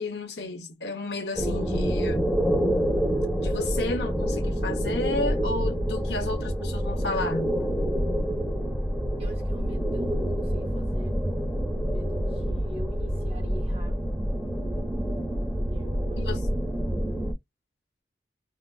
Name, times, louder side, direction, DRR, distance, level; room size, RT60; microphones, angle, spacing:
voice 1, 0.0-2.4 3.4-7.6 16.2-16.7, left 2 dB, 70° left, 0.8 m, -32 dB
sound 1, 1.4-17.3, equal, ahead, 0.8 m, -27 dB
voice 2, 9.2-11.2 11.8-14.0 15.7-16.3, left 1 dB, 35° right, 1.0 m, -44 dB
3.7 x 2.4 x 2.3 m
head